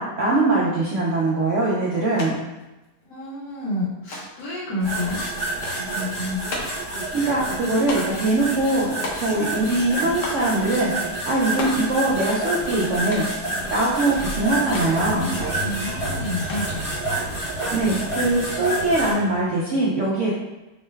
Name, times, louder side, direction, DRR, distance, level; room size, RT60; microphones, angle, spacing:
voice 1, 0.0-2.4 7.1-10.9 11.2-13.2 13.7-15.4 17.7-20.3, right 2 dB, 70° right, -5 dB, 0.7 m, -22 dB
sound 1, 2.2-2.3 2.6-3.3 4.1-4.5 5.6-5.9 6.5-6.9 7.9-8.3 9.0-9.6 10.2-10.5 11.6-11.9 13.1-13.4 14.7-14.9 16.5-16.9, left 2 dB, 85° left, 1.4 m, -33 dB
voice 2, 3.0-5.2 5.5-6.4 15.5-16.8, left 2 dB, 70° left, -9 dB, 1.8 m, -30 dB
sound 2, 4.8-19.1, right 2 dB, 50° left, 0.4 m, -29 dB
Sliding door, 13.9-19.6, equal, 45° right, 1.0 m, -34 dB
3.7 x 2.2 x 3.3 m, 1.0 s
omnidirectional pair, 1.9 m